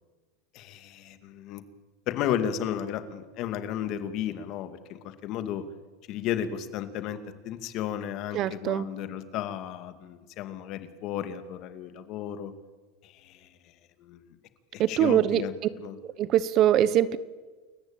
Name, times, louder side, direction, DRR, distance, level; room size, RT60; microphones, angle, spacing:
voice 1, 0.5-1.6 2.1-5.6 6.1-7.2 7.4-12.5 13.0-13.7 14.0-14.3 14.7-16.0, left 10 dB, 50° left, 9 dB, 2.3 m, -33 dB
voice 2, 8.3-8.9 14.8-15.4 16.2-17.2, right 11 dB, 40° right, 16 dB, 1.1 m, -23 dB
29.0 x 14.5 x 8.9 m, 1.3 s
supercardioid pair, 125°, 0 cm